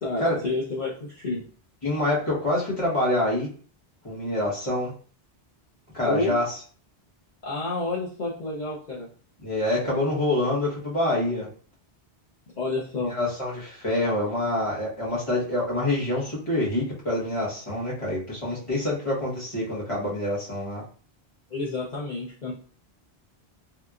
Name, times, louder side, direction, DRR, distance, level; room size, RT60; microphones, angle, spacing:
voice 1, 0.0-1.4 6.0-6.4 7.4-9.1 9.9-10.0 12.6-13.1 21.5-22.5, left 2 dB, 45° left, -6 dB, 0.8 m, -29 dB
voice 2, 1.8-3.5 4.0-4.9 5.9-6.5 9.4-11.5 13.1-20.8, left 1 dB, 30° left, -7 dB, 1.3 m, -26 dB
3.2 x 2.9 x 2.4 m, 0.43 s
omnidirectional pair, 1.1 m